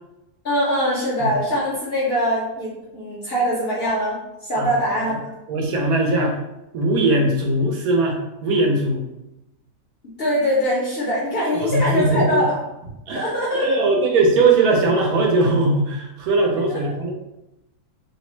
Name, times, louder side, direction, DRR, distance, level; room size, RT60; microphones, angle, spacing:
voice 1, 0.4-4.2 4.4-5.3 10.2-12.6 13.1-13.7 16.7-16.9, equal, 55° left, -6 dB, 0.7 m, -22 dB
voice 2, 5.5-6.4 6.7-9.0 11.5-12.5 13.1-13.2 13.5-17.1, right 2 dB, 75° right, 1 dB, 1.1 m, -20 dB
2.9 x 2.0 x 3.0 m, 0.92 s
omnidirectional pair, 1.7 m